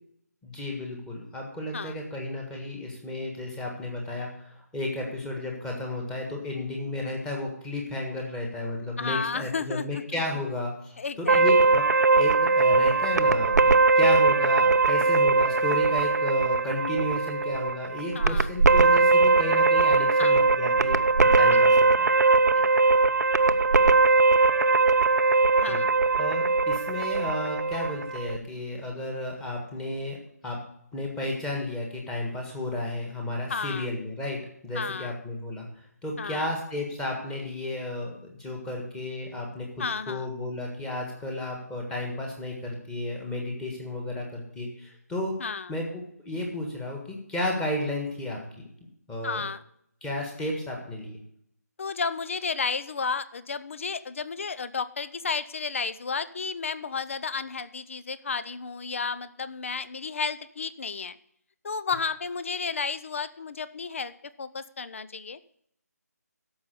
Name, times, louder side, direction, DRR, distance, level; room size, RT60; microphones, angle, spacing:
voice 1, 0.4-22.1 25.7-25.8 26.2-30.2 30.4-30.6 30.9-35.7 36.0-45.3 45.7-48.7 49.1-49.4 50.0-51.2, left 1 dB, 5° left, 0 dB, 1.6 m, -33 dB
voice 2, 9.0-10.0 11.0-11.4 18.1-18.5 20.2-20.4 21.5-21.6 22.5-22.9 25.6-25.9 33.5-33.9 34.7-35.1 36.2-36.5 39.8-40.3 45.4-45.7 49.2-49.6 51.8-61.2 61.6-64.1 64.4-65.4, left 5 dB, 50° left, 14 dB, 0.7 m, -32 dB
sound 1, 11.3-28.4, right 3 dB, 80° right, 0.7 m, -21 dB
13.5 x 5.6 x 6.8 m, 0.71 s
figure-of-eight pair, 160°, 9 cm